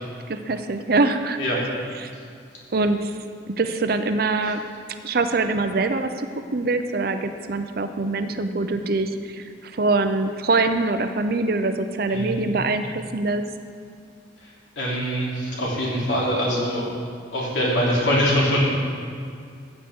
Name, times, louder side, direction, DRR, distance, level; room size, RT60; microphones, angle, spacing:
voice 1, 0.3-1.4 2.0-2.1 2.7-3.1 3.5-4.6 5.0-13.4, right 3 dB, 55° right, 8 dB, 0.6 m, -24 dB
voice 2, 12.1-12.6 14.4-14.5 14.8-16.8 17.3-18.6, equal, 85° left, -5 dB, 3.1 m, -23 dB
15.0 x 8.2 x 3.6 m, 2.2 s
head